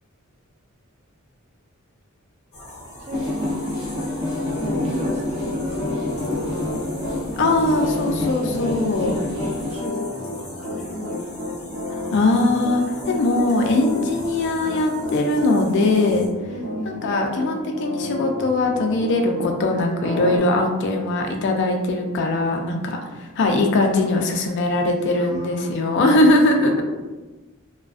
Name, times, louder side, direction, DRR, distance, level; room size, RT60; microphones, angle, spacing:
sound 1, 2.5-16.3, left 1 dB, 35° left, 0.7 m, -41 dB
voice 1, 3.0-4.1 4.5-7.1 8.3-11.8 16.5-17.2 20.9-21.6 24.9-25.8 26.5-26.8, equal, 30° right, -1 dB, 0.4 m, -36 dB
sound 2, 3.1-9.8, left 2 dB, 75° right, 0.8 m, -28 dB
Piano, 4.4-19.5 20.0-20.4, left 2 dB, 55° right, 1.1 m, -31 dB
voice 2, 7.4-9.1 12.1-16.3 16.9-26.8, left 2 dB, 55° left, 2 dB, 0.3 m, -20 dB
2.4 x 2.2 x 2.3 m, 1.2 s
head